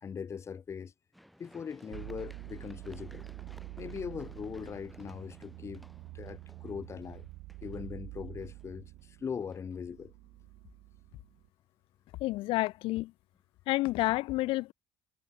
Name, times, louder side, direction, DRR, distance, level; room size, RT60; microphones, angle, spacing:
voice 1, 0.0-0.9 1.4-3.3 3.8-5.8 6.1-7.3 7.6-10.1, left 6 dB, 30° left, 0.6 m, -40 dB
Run, 1.1-9.0 9.5-9.6, equal, ahead, 4.5 m, -57 dB
sound 1, 1.9-11.5, right 20 dB, 85° right, 2.5 m, -47 dB
voice 2, 12.2-13.1 13.7-14.7, left 19 dB, 80° left, 0.4 m, -29 dB
cardioid pair, 115°, 9 cm